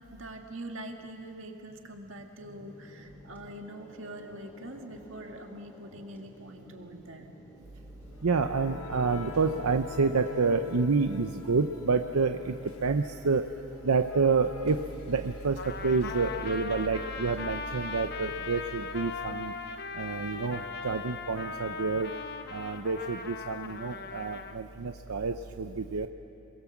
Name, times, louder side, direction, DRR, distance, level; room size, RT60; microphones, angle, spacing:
voice 1, 0.1-7.3, right 1 dB, 60° right, 3 dB, 2.1 m, -44 dB
sound 1, 2.4-11.4, equal, 10° left, 2.8 m, -54 dB
sound 2, 8.0-19.9, left 5 dB, 80° left, 1.2 m, -49 dB
voice 2, 8.2-13.5 13.8-19.5 19.9-22.1 22.5-26.1, right 4 dB, 90° right, 7 dB, 0.7 m, -28 dB
Trumpet, 15.6-24.6, left 4 dB, 45° left, 1.1 m, -39 dB
27.5 x 22.5 x 7.3 m, 2.8 s
head